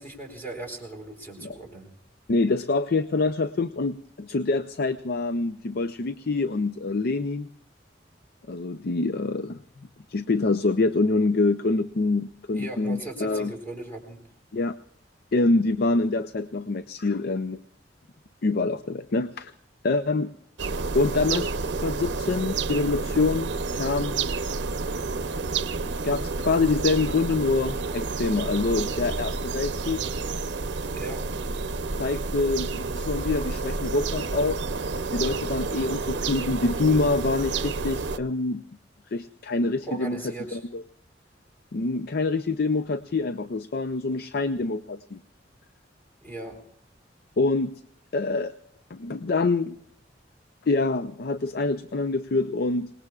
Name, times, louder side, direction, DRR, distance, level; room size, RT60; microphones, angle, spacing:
voice 1, 0.0-1.9 12.5-14.2 30.9-31.3 39.9-40.6 46.2-46.6, right 2 dB, 10° left, 2 dB, 4.1 m, -37 dB
voice 2, 2.3-7.5 8.5-9.6 10.1-13.5 14.5-14.8 15.3-17.6 18.4-19.5 19.8-20.3 20.9-24.2 26.0-30.0 32.0-34.6 35.1-38.6 39.1-40.8 41.7-45.2 47.4-47.7 48.1-48.5 48.9-49.8 50.7-52.9, left 3 dB, 60° left, 12 dB, 0.5 m, -26 dB
sound 1, 20.6-38.2, right 4 dB, 70° right, 0.7 m, -30 dB
27.5 x 19.5 x 2.4 m, 0.67 s
head